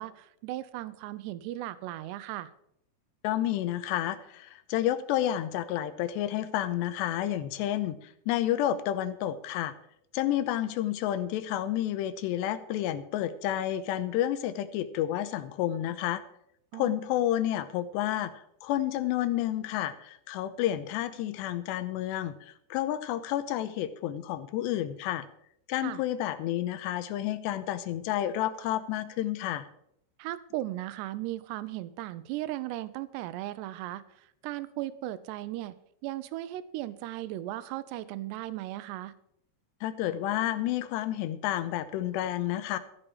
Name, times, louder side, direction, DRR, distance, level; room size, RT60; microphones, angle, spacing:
voice 1, 0.0-2.5 16.7-17.0 25.7-26.0 30.2-35.7 36.0-39.1, right 15 dB, 80° right, 15 dB, 2.7 m, -37 dB
voice 2, 3.2-8.0 8.3-9.7 10.1-16.2 16.7-18.3 18.6-25.3 25.7-29.7 39.8-42.8, left 12 dB, 80° left, 12 dB, 2.8 m, -30 dB
14.5 x 6.9 x 7.2 m, 0.71 s
omnidirectional pair, 5.3 m